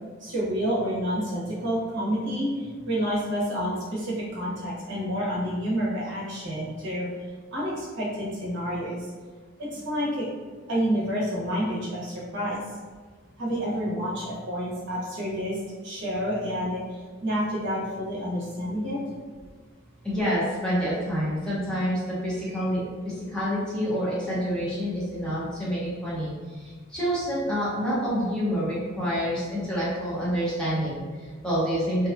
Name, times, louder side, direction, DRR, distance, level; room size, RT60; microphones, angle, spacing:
voice 1, 0.2-7.1 7.5-9.0 9.6-10.2 10.7-12.6 13.4-15.6 15.8-16.8 17.2-19.0, equal, 65° right, -6 dB, 0.8 m, -29 dB
voice 2, 20.0-32.1, equal, 5° left, -10 dB, 0.8 m, -28 dB
2.7 x 2.3 x 2.4 m, 1.5 s
head